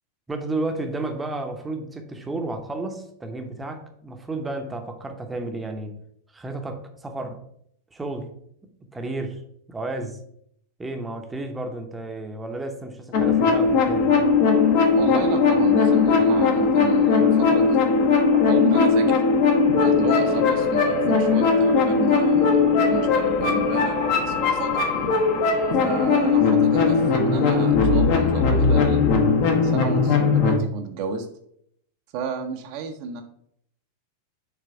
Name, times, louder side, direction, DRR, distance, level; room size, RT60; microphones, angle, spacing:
voice 1, 0.3-6.0 6.3-7.4 7.9-8.3 8.9-9.4 9.7-10.2 10.8-14.2, right 2 dB, 10° right, 5 dB, 0.9 m, -32 dB
sound 1, 13.1-30.6, left 5 dB, 45° left, 1.1 m, -19 dB
voice 2, 14.9-19.2 19.8-24.7 25.8-29.0 29.6-31.3 32.1-33.2, right 5 dB, 45° right, 5 dB, 0.8 m, -32 dB
6.9 x 3.3 x 4.5 m, 0.70 s
figure-of-eight pair, 90°, 0 cm